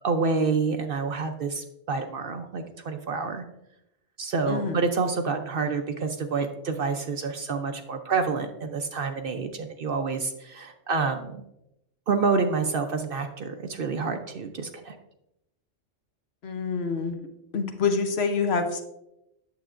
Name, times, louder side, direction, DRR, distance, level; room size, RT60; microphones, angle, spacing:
voice 1, 0.0-3.4 4.2-11.4 12.1-14.9, right 4 dB, 60° right, 6 dB, 0.7 m, -28 dB
voice 2, 4.5-4.9 16.4-17.2 17.5-18.8, left 5 dB, 60° left, 6 dB, 1.0 m, -26 dB
9.0 x 7.2 x 2.5 m, 0.85 s
omnidirectional pair, 1.3 m